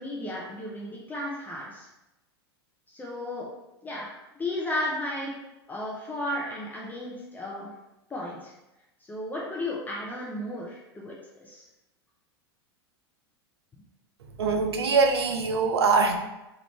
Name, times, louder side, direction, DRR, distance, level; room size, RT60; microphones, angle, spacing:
voice 1, 0.0-1.9 2.9-3.5 3.8-4.1 4.3-5.4 5.7-7.7 8.1-8.5 9.1-11.6, left 1 dB, 15° left, -5 dB, 0.6 m, -34 dB
voice 2, 14.4-16.2, right 4 dB, 75° right, 4 dB, 0.5 m, -23 dB
3.3 x 2.5 x 3.2 m, 0.96 s
figure-of-eight pair, 95°, 14 cm